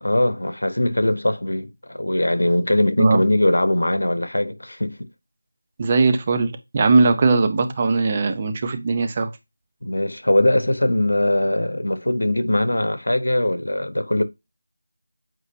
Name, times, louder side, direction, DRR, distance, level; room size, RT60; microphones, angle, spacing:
voice 1, 0.0-5.1 9.8-14.2, left 1 dB, 85° left, 1.2 m, -21 dB
voice 2, 5.8-9.3, right 3 dB, 20° right, 0.7 m, -19 dB
8.1 x 4.7 x 2.8 m
figure-of-eight pair, 175°, 0 cm